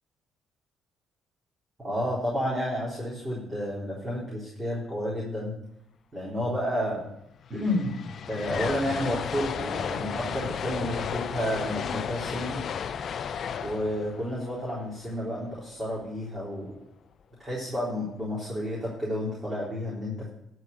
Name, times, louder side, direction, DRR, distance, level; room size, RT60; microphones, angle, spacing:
voice 1, 1.8-5.6 6.1-7.1 7.5-8.0 8.3-12.6 13.6-16.7 17.4-20.3, equal, 15° right, -7 dB, 3.9 m, -31 dB
sound 1, 7.0-7.1 7.3-15.5, left 7 dB, 50° left, 0.5 m, -34 dB
13.0 x 4.9 x 8.0 m, 0.79 s
cardioid pair, 110°, 0 cm